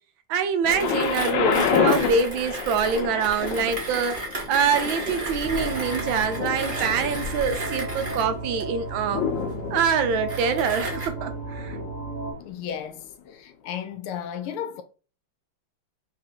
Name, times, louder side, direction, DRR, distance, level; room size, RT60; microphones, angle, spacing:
voice 1, 0.3-4.2 4.5-9.2 9.7-11.8, right 6 dB, 75° right, 1.3 m, -25 dB
Thunder, 0.6-12.5 13.3-13.4, left 7 dB, 70° left, 1.4 m, -30 dB
Mechanisms, 0.7-11.1, right 1 dB, 30° right, 1.1 m, -34 dB
sound 1, 5.4-12.3, right 3 dB, 45° right, 0.5 m, -34 dB
voice 2, 12.4-13.0 13.3-14.8, left 9 dB, 90° left, 1.6 m, -33 dB
4.1 x 2.5 x 4.3 m
omnidirectional pair, 2.3 m